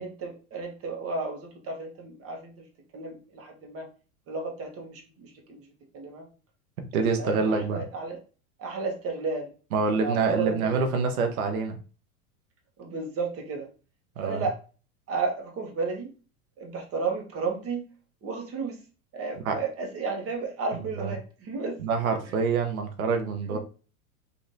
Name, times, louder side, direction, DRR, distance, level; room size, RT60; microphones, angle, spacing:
voice 1, 0.0-2.6 2.9-3.9 4.3-5.7 5.9-6.3 7.0-8.2 8.6-9.5 10.0-10.8 12.8-13.7 14.2-14.6 15.1-16.1 16.6-17.9 18.2-18.8 19.1-21.8 23.5-23.6, right 4 dB, 35° right, 2 dB, 1.1 m, -33 dB
voice 2, 6.9-7.8 9.7-11.8 14.2-14.4 19.4-19.6 21.0-21.1 21.8-23.6, right 5 dB, 90° right, 5 dB, 0.8 m, -26 dB
3.2 x 2.6 x 2.7 m, 0.36 s
hypercardioid pair, 105°, 42 cm